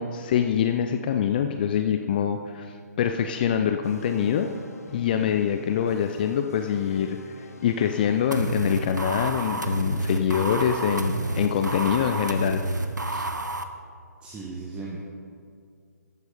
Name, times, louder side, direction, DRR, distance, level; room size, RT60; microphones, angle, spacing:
voice 1, 0.0-4.5 4.9-12.6 13.1-13.3, left 8 dB, 30° left, 7 dB, 0.5 m, -25 dB
kind of chariots of fire, 3.8-13.1, left 2 dB, 60° left, 1.3 m, -48 dB
sound 1, 8.3-13.6, right 2 dB, 85° right, 1.0 m, -29 dB
voice 2, 14.2-15.0, right 3 dB, 10° right, -3 dB, 1.0 m, -36 dB
13.5 x 9.4 x 4.9 m, 2.2 s
figure-of-eight pair, 140°, 9 cm